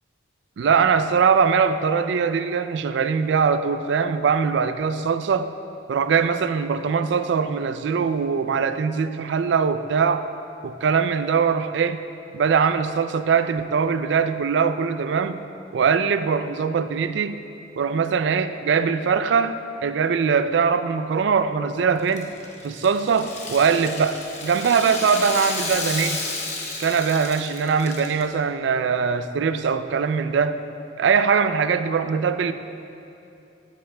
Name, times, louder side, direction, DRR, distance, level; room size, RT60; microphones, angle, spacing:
voice 1, 0.6-5.5 5.9-10.3 10.6-12.0 12.3-15.4 15.7-17.4 17.8-22.3 22.6-26.2 26.8-30.6 31.0-32.5, right 6 dB, 70° right, 11 dB, 0.3 m, -22 dB
Rattle (instrument), 22.0-28.2, left 3 dB, 35° left, 1.0 m, -32 dB
12.5 x 8.8 x 2.2 m, 2.7 s
head